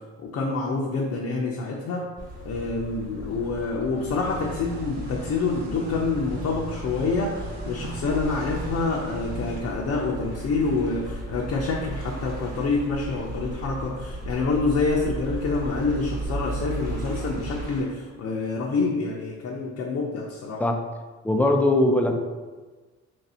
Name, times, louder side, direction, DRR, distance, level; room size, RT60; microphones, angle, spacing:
voice 1, 0.2-2.1 2.4-20.6 21.3-21.5, left 3 dB, 60° left, -3 dB, 0.6 m, -27 dB
sound 1, 2.2-17.8, right 2 dB, 30° right, 1.2 m, -36 dB
sound 2, 4.1-9.6, right 1 dB, 65° right, 0.9 m, -39 dB
voice 2, 21.2-22.2, left 1 dB, 5° left, 4 dB, 0.4 m, -20 dB
3.2 x 2.7 x 4.2 m, 1.3 s
cardioid pair, 90°, 30 cm